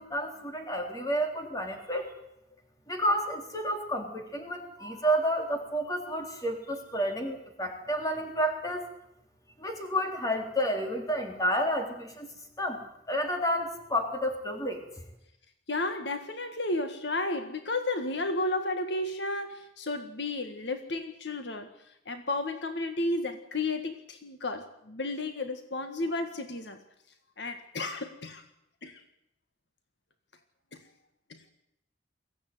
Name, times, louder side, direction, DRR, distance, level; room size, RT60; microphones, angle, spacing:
voice 1, 0.0-2.1 2.9-8.9 9.6-14.8, equal, 20° left, 3 dB, 3.8 m, -30 dB
voice 2, 15.7-21.7 22.1-26.8 27.4-28.4 28.8-29.0 30.7-30.8 31.3-31.4, left 2 dB, 65° left, 7 dB, 1.7 m, -33 dB
22.5 x 16.0 x 9.5 m, 0.82 s
head